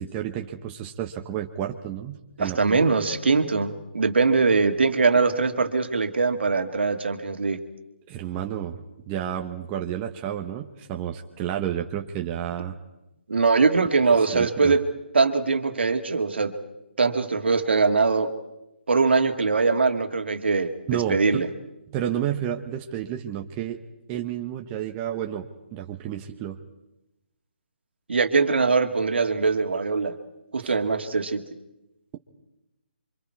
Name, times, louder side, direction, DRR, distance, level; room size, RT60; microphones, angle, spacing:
voice 1, 0.0-2.9 8.1-12.8 14.2-14.7 20.9-21.4 21.9-23.8 24.1-26.6 30.6-30.7, right 10 dB, 20° right, 3 dB, 1.2 m, -31 dB
voice 2, 2.4-7.6 13.3-14.9 15.1-16.6 17.0-18.3 18.9-20.7 21.1-21.5 28.1-30.2 30.5-31.4, right 4 dB, 70° right, 6 dB, 2.1 m, -22 dB
29.0 x 25.0 x 4.7 m, 0.92 s
figure-of-eight pair, 145°, 6 cm